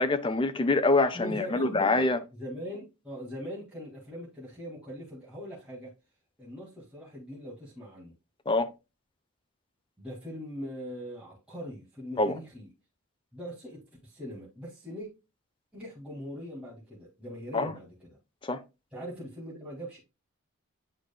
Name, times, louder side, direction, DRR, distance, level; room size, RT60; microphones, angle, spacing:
voice 1, 0.0-2.2 8.5-8.7 12.2-12.4 17.5-17.7 18.4-18.6, left 2 dB, 25° left, 0.5 m, -25 dB
voice 2, 1.1-5.9 6.4-8.1 10.0-12.7 13.3-15.1 15.7-18.1 18.9-20.0, equal, 5° right, 2.1 m, -41 dB
8.8 x 4.7 x 2.2 m
head